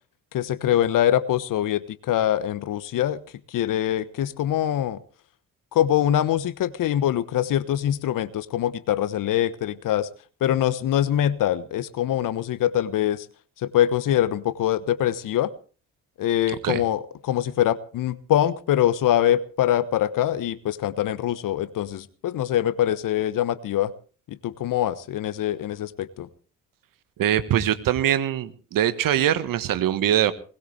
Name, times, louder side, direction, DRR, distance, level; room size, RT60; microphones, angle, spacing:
voice 1, 0.3-3.2 3.5-5.0 5.7-10.1 10.4-13.3 13.6-15.5 16.2-23.9 24.3-26.3, left 11 dB, 55° left, 16 dB, 1.1 m, -24 dB
voice 2, 27.2-30.3, right 11 dB, 60° right, 12 dB, 1.5 m, -22 dB
20.5 x 18.5 x 3.3 m, 0.41 s
hypercardioid pair, 45°, 38 cm